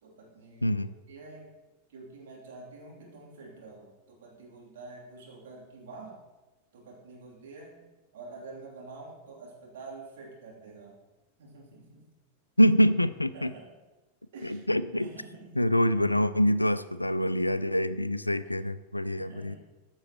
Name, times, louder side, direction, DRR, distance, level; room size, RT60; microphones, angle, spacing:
voice 1, 0.0-1.5 1.9-6.2 6.7-7.8 8.1-11.0 11.4-12.1 13.3-13.7 14.3-14.7 15.0-15.6 19.1-19.6, right 3 dB, 60° right, -3 dB, 3.0 m, -47 dB
voice 2, 12.6-13.5 14.4-15.1 15.6-19.5, equal, 85° left, 15 dB, 0.3 m, -25 dB
14.5 x 6.3 x 3.0 m, 1.1 s
figure-of-eight pair, 90°, 0 cm